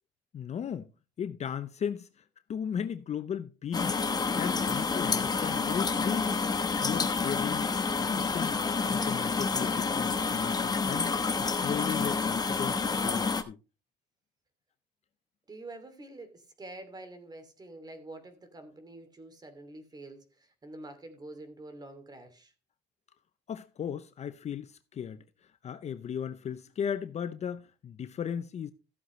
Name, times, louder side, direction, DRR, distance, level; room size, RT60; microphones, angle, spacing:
voice 1, 0.3-0.9 1.2-2.1 2.5-4.0 4.4-6.4 6.8-7.7 8.0-8.6 8.9-13.6 23.5-25.2 25.6-28.7, left 8 dB, 40° left, 0.7 m, -36 dB
sound 1, 3.7-13.4, left 4 dB, 25° left, 1.1 m, -29 dB
voice 2, 15.5-22.5, right 2 dB, 25° right, 2.7 m, -47 dB
15.0 x 7.8 x 3.2 m
cardioid pair, 110°, 17 cm